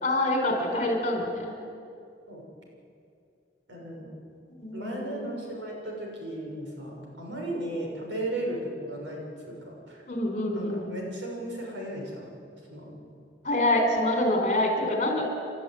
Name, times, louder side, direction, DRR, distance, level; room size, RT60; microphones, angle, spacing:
voice 1, 0.0-1.5 4.6-5.3 10.1-10.9 13.4-15.3, left 1 dB, 40° left, 3 dB, 4.8 m, -26 dB
voice 2, 3.7-4.1 4.7-9.2 9.5-10.0 10.5-12.3 12.7-13.0, right 1 dB, 85° right, -1 dB, 6.6 m, -35 dB
30.0 x 12.5 x 9.5 m, 2.4 s
head